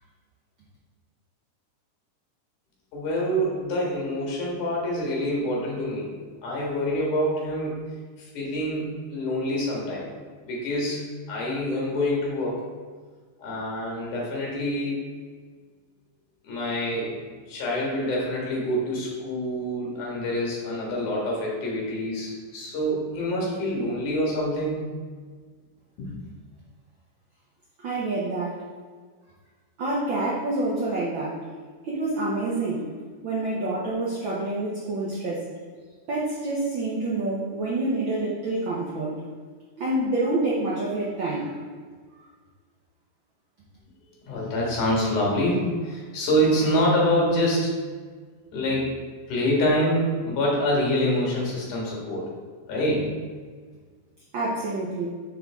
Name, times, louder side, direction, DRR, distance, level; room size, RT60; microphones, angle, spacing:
voice 1, 2.9-6.1 6.4-7.8 8.2-10.1 10.4-12.6 13.4-15.0 16.4-17.1 17.5-24.8 26.0-26.1 44.3-47.7 48.5-48.9 49.3-52.2 52.7-53.1, equal, 75° left, -4 dB, 3.2 m, -26 dB
voice 2, 27.8-28.6 29.8-31.4 31.8-32.9 33.2-35.5 36.1-39.2 39.8-41.6 54.3-55.1, right 2 dB, 85° right, -5 dB, 1.0 m, -27 dB
9.5 x 3.7 x 3.6 m, 1.5 s
omnidirectional pair, 3.6 m